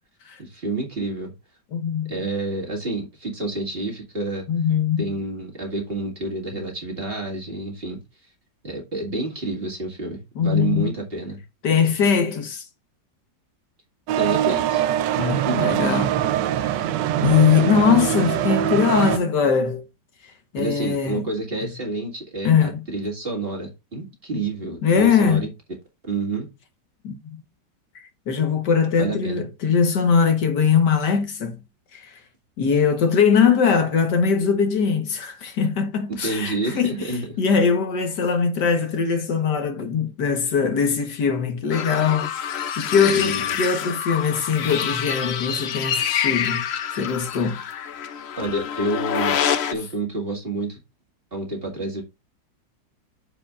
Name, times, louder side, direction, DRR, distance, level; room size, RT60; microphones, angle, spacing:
voice 1, 0.4-1.3 2.1-4.4 5.0-8.0 8.6-11.4 14.2-14.8 15.2-15.9 20.5-25.5 26.0-26.5 29.0-29.4 36.1-37.4 42.9-43.4 48.4-49.4 49.7-50.8 51.3-52.0, right 2 dB, 30° right, 2.2 m, -29 dB
voice 2, 1.7-2.1 4.5-5.1 10.4-10.9 11.6-12.7 15.2-16.2 16.6-16.9 17.2-19.8 20.5-21.2 22.4-22.8 24.8-25.4 27.0-27.4 28.3-31.6 31.9-32.2 32.6-37.1 37.4-42.3 42.8-46.6 46.9-47.6, left 6 dB, 70° left, 1.8 m, -21 dB
sound 1, 14.1-19.2, right 11 dB, 80° right, 1.2 m, -23 dB
sound 2, 41.7-49.7, left 9 dB, 85° left, 0.5 m, -27 dB
13.0 x 5.0 x 2.4 m
omnidirectional pair, 1.9 m